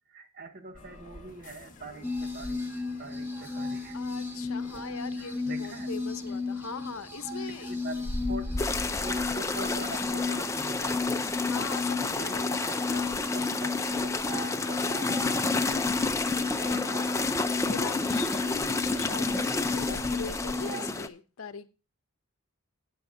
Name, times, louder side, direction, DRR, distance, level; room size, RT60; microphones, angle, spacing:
voice 1, 0.1-4.0 5.2-5.9 7.5-11.2 12.0-13.1 13.3-16.3 16.6-16.7, right 3 dB, 45° right, 0.9 m, -44 dB
sound 1, 0.7-13.2, left 1 dB, 35° left, 1.3 m, -43 dB
sound 2, 2.0-20.9, left 3 dB, 10° right, 1.8 m, -34 dB
voice 2, 3.9-7.8 11.4-12.6 12.9-13.2 16.4-17.3 17.7-21.7, left 5 dB, 65° left, 0.8 m, -41 dB
sound 3, 8.6-21.1, left 3 dB, 15° left, 0.5 m, -30 dB
17.0 x 7.8 x 2.6 m
head